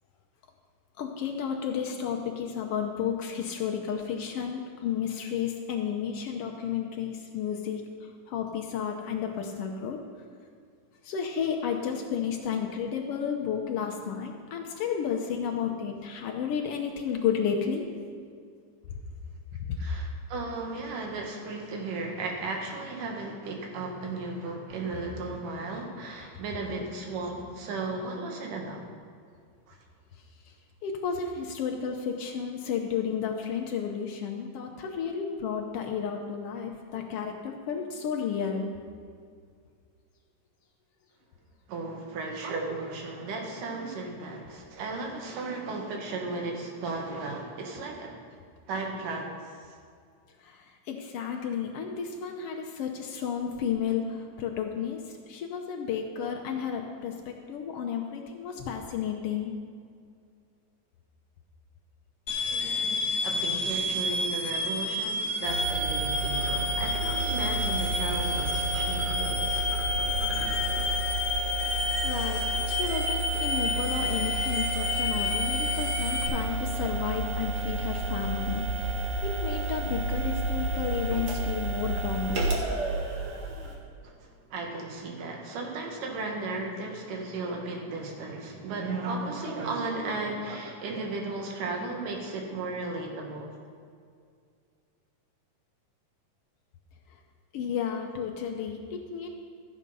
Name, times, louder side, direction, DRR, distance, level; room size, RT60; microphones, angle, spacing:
voice 1, 1.0-7.8 8.3-10.0 11.0-17.8 19.7-19.8 30.8-38.7 50.4-55.0 55.3-59.5 72.0-78.9 79.2-82.6 97.5-99.3, left 7 dB, 85° left, 2 dB, 1.3 m, -32 dB
voice 2, 19.8-28.9 29.7-29.8 41.7-48.2 48.7-49.7 62.5-69.7 84.0-93.5, right 3 dB, 80° right, 1 dB, 3.0 m, -35 dB
sound 1, 62.3-76.3, left 2 dB, 60° left, 1.0 m, -30 dB
sound 2, 65.4-83.8, right 2 dB, 55° right, 2.2 m, -31 dB
14.0 x 7.4 x 5.4 m, 2.2 s
omnidirectional pair, 3.7 m